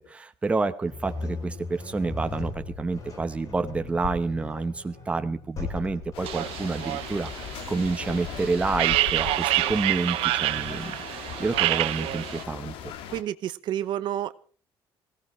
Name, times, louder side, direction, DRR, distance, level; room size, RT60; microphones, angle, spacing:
voice 1, 0.1-12.9, right 3 dB, 15° right, 8 dB, 1.0 m, -29 dB
sound 1, 0.8-12.0, left 3 dB, 35° left, 5.1 m, -39 dB
sound 2, 6.1-13.2, left 9 dB, 70° left, 2.0 m, -38 dB
sound 3, 6.2-12.4, right 17 dB, 85° right, 0.8 m, -28 dB
voice 2, 13.1-14.3, right 11 dB, 55° right, 13 dB, 0.8 m, -29 dB
24.0 x 17.0 x 3.2 m, 0.42 s
cardioid pair, 180°, 10 cm